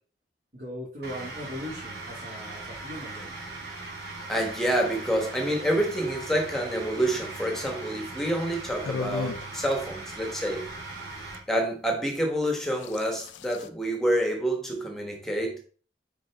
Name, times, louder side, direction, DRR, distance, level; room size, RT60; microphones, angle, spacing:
voice 1, 0.5-3.4, equal, 45° right, -7 dB, 2.2 m, -39 dB
sound 1, 1.0-11.4, right 2 dB, 65° right, 2.5 m, -39 dB
voice 2, 4.3-10.6 11.5-15.6, right 1 dB, ahead, 2 dB, 1.4 m, -27 dB
sound 2, 8.8-9.5 11.3-11.4 12.4-13.7, left 5 dB, 80° left, 0.4 m, -36 dB
6.2 x 5.2 x 3.5 m, 0.40 s
head